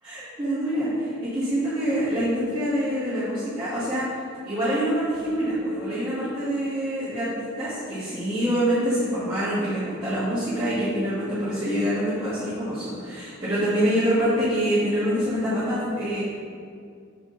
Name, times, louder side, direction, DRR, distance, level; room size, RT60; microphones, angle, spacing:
voice 1, 0.0-4.1 4.4-7.3 7.6-16.2, equal, 20° right, -14 dB, 1.5 m, -25 dB
6.9 x 4.9 x 3.8 m, 2.3 s
head